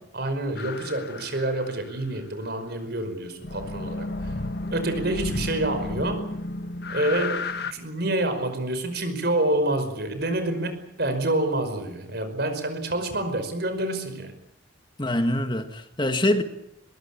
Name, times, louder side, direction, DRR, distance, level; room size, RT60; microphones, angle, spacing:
voice 1, 0.1-4.3 4.7-6.2 6.9-14.3, right 1 dB, 60° right, 5.3 m, -27 dB
sound 1, 0.6-2.0 3.4-7.7, left 2 dB, 60° left, 1.6 m, -32 dB
voice 2, 15.0-16.4, left 1 dB, 25° left, 1.8 m, -24 dB
22.0 x 21.5 x 8.5 m
head